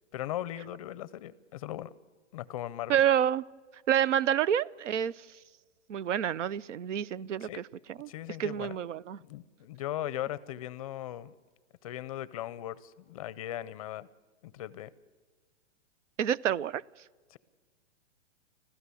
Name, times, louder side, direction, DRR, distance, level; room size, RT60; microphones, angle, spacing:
voice 1, 0.1-1.9 2.3-3.0 7.2-7.6 8.1-8.8 9.2-11.3 11.8-14.1 14.4-14.9 17.3-17.4, left 13 dB, 30° left, 20 dB, 0.5 m, -38 dB
voice 2, 2.9-3.4 3.9-5.1 5.9-7.6 8.0-8.1 8.4-9.2 16.2-16.8, right 10 dB, 80° right, 23 dB, 0.7 m, -28 dB
25.5 x 15.5 x 7.0 m, 1.5 s
hypercardioid pair, 150°, 36 cm